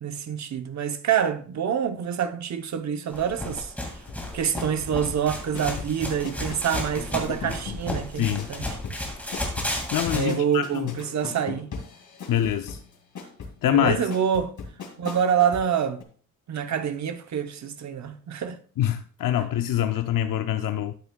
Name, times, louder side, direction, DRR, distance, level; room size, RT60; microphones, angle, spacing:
voice 1, 0.0-3.7 4.3-8.8 10.1-11.7 13.7-14.5 15.0-16.0 16.5-18.6, right 8 dB, 60° right, 0.8 m, -26 dB
sound 1, 3.1-10.2, left 1 dB, 5° left, 2.1 m, -33 dB
sound 2, 4.0-15.7 16.0-16.1, left 5 dB, 65° left, 2.3 m, -38 dB
voice 2, 8.2-8.5 9.9-10.9 12.3-12.8 13.6-14.1 18.8-20.9, left 11 dB, 80° left, 0.5 m, -25 dB
12.5 x 9.3 x 2.3 m
wide cardioid pair, 170°, 32 cm